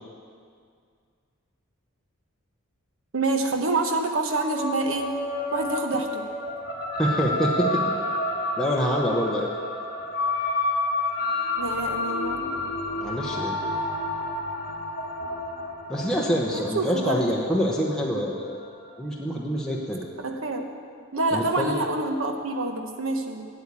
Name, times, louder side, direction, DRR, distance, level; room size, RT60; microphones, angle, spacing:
voice 1, 3.1-5.1 5.5-6.2 11.6-12.5 16.5-17.2 20.2-20.7 21.1-23.5, right 2 dB, 75° right, 4 dB, 1.2 m, -27 dB
sound 1, 4.3-19.0, left 2 dB, 50° left, 1.3 m, -30 dB
voice 2, 7.0-7.8 8.6-9.5 13.0-13.6 15.9-18.3 19.0-20.1 21.3-21.8, equal, 5° left, -3 dB, 1.0 m, -26 dB
9.0 x 8.8 x 8.3 m, 2.2 s
head